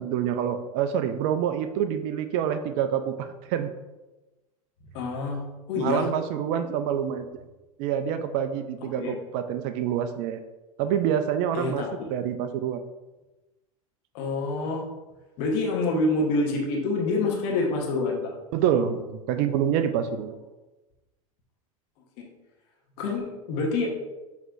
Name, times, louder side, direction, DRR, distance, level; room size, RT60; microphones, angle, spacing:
voice 1, 0.0-3.7 5.8-7.4 7.8-10.4 10.8-12.8 18.5-20.3, right 9 dB, 45° right, 9 dB, 0.4 m, -27 dB
voice 2, 4.9-6.1 8.8-9.2 11.5-11.9 14.1-14.8 15.4-18.3 22.2-22.3 23.0-23.9, left 3 dB, 55° left, 0 dB, 1.1 m, -27 dB
6.0 x 3.1 x 2.5 m, 1.1 s
hypercardioid pair, 85°, 18 cm